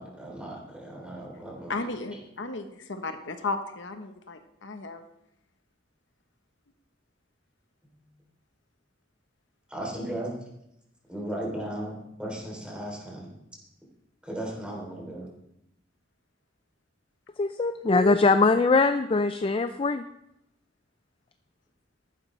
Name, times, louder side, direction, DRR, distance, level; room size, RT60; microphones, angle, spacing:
voice 1, 0.0-1.7 9.7-10.3 11.1-13.3 14.2-15.3, right 1 dB, 5° right, -2 dB, 3.2 m, -36 dB
voice 2, 1.7-5.0, left 3 dB, 80° left, 7 dB, 1.0 m, -34 dB
voice 3, 17.4-20.0, left 3 dB, 30° left, 9 dB, 0.4 m, -22 dB
14.5 x 11.5 x 3.3 m, 0.81 s
head